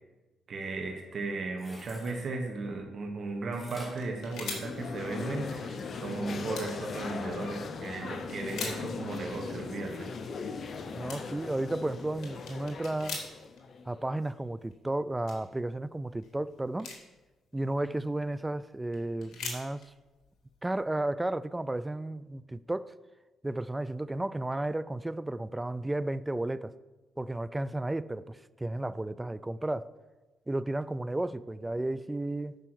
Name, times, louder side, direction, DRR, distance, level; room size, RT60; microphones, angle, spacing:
voice 1, 0.5-10.1 10.4-10.5, right 3 dB, 50° right, 3 dB, 1.4 m, -36 dB
sound 1, 1.5-2.2 3.5-5.1 5.6-5.7, left 1 dB, 15° left, 2.4 m, -50 dB
sound 2, 3.7-5.1 5.4-5.5 5.7-5.9 6.3-6.8 7.5-7.8 8.3-9.1 9.7-10.1 10.8-10.9 11.1-11.5 11.9-13.6 14.0-14.1 14.4-15.5 16.1-17.2 17.8-18.6 18.9-20.8, left 4 dB, 75° left, 2.3 m, -42 dB
sound 3, 4.3-14.3, left 4 dB, 50° left, 0.8 m, -39 dB
voice 2, 10.9-13.2 13.9-16.9 17.5-19.9 20.6-22.9 23.4-26.7 27.2-29.9 30.5-32.6, right 1 dB, 15° right, 16 dB, 0.3 m, -33 dB
9.2 x 5.6 x 6.3 m, 1.2 s
cardioid pair, 95°, 0 cm